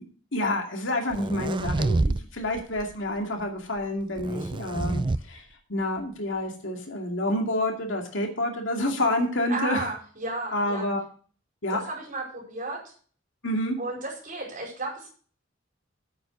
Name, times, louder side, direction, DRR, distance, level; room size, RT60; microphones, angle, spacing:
voice 1, 0.3-5.4 5.7-9.9 10.5-11.0 11.6-11.8 13.4-13.8, left 1 dB, 70° left, 2 dB, 2.4 m, -28 dB
sound 1, 1.1-2.2 2.6-2.9 4.2-5.2, right 2 dB, 25° right, 0.4 m, -27 dB
voice 2, 9.5-10.8 11.7-12.8 13.8-15.1, right 2 dB, 45° right, -1 dB, 4.8 m, -33 dB
8.7 x 7.7 x 6.2 m, 0.42 s
head